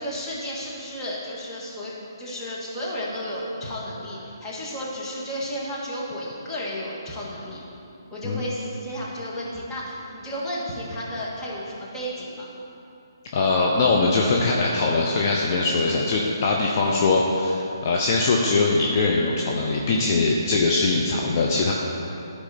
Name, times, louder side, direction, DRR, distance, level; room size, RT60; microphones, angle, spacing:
voice 1, 0.0-7.6 8.1-12.5, equal, 15° left, -6 dB, 1.6 m, -33 dB
voice 2, 13.3-21.7, left 3 dB, 40° left, -2 dB, 0.7 m, -21 dB
12.0 x 4.8 x 4.3 m, 2.8 s
figure-of-eight pair, 145°, 2 cm